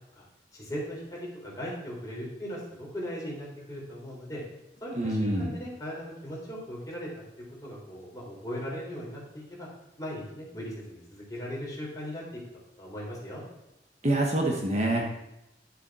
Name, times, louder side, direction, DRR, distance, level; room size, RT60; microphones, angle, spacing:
voice 1, 0.5-4.4 4.8-7.1 7.6-9.7 10.0-12.4 12.8-13.4, equal, 20° left, -5 dB, 4.0 m, -38 dB
voice 2, 4.9-5.6 14.0-15.0, right 1 dB, 40° right, 0 dB, 1.4 m, -26 dB
11.5 x 7.2 x 4.8 m, 0.92 s
head